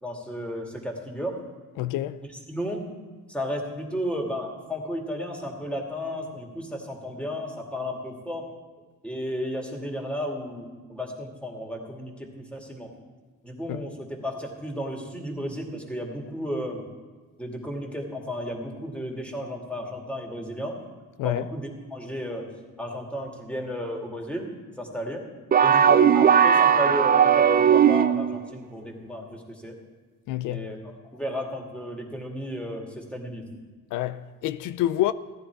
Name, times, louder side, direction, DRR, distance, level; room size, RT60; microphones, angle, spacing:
voice 1, 0.0-1.3 2.5-2.8 3.3-8.5 9.0-12.9 13.4-16.8 17.4-20.8 21.2-22.5 22.8-24.5 24.8-25.3 25.6-29.7 30.5-33.5, equal, 5° left, 2.3 m, -33 dB
voice 2, 1.8-2.2 13.7-13.8 21.2-21.4 30.3-30.7 33.9-35.1, left 14 dB, 90° left, 0.4 m, -27 dB
sound 1, 25.5-28.4, right 8 dB, 30° right, 0.5 m, -18 dB
15.5 x 10.0 x 4.7 m
cardioid pair, 90°, 30 cm